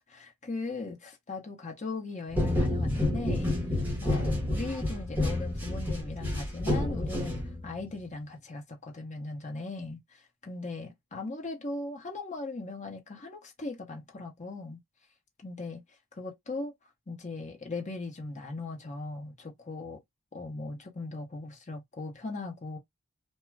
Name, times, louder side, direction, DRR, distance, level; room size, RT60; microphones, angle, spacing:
voice 1, 0.1-14.8 15.4-15.8 16.1-16.7 17.1-20.0 20.3-22.8, left 3 dB, 35° left, 0.9 m, -39 dB
sound 1, 2.3-7.8, left 1 dB, 10° right, 0.9 m, -29 dB
2.4 x 2.2 x 3.2 m
head